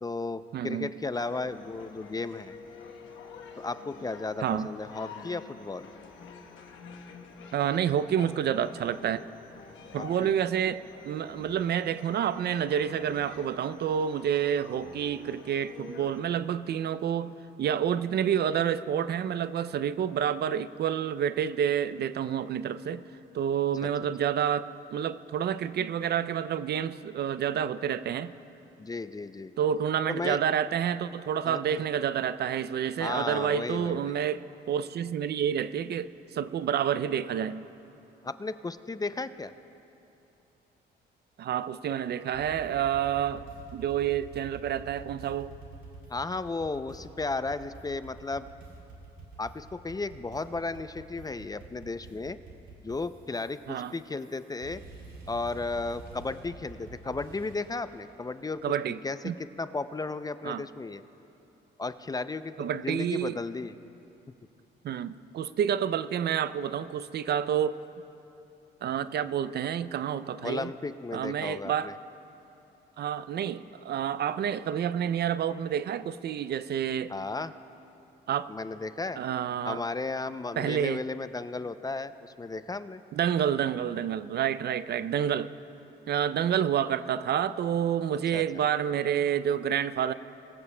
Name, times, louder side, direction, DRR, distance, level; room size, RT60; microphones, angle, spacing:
voice 1, 0.0-2.5 3.6-5.9 9.9-10.3 28.8-29.5 30.1-30.4 31.4-31.8 33.0-34.2 38.2-39.5 46.1-48.5 49.4-52.4 52.8-54.8 55.3-58.8 59.0-61.0 61.8-63.7 70.4-71.9 77.1-77.5 78.5-79.2 79.6-83.0 88.3-88.6, left 3 dB, 20° left, 13 dB, 0.4 m, -34 dB
voice 2, 0.5-0.9 4.4-4.7 7.5-9.3 9.9-23.0 23.3-28.3 29.6-34.4 34.7-37.7 41.4-43.5 43.7-45.5 53.7-53.9 58.6-59.0 59.2-59.3 60.4-60.6 62.6-63.4 64.8-67.8 68.8-70.7 71.1-71.9 73.0-77.1 78.3-78.5 79.2-79.8 80.6-81.0 83.1-85.5 86.1-90.1, right 9 dB, 55° right, 15 dB, 0.4 m, -29 dB
sound 1, 1.1-16.2, left 5 dB, 75° left, 1.1 m, -48 dB
sound 2, 42.3-57.9, right 3 dB, 80° right, 2.6 m, -48 dB
22.0 x 15.0 x 2.2 m, 2.9 s
cardioid pair, 75°, 20 cm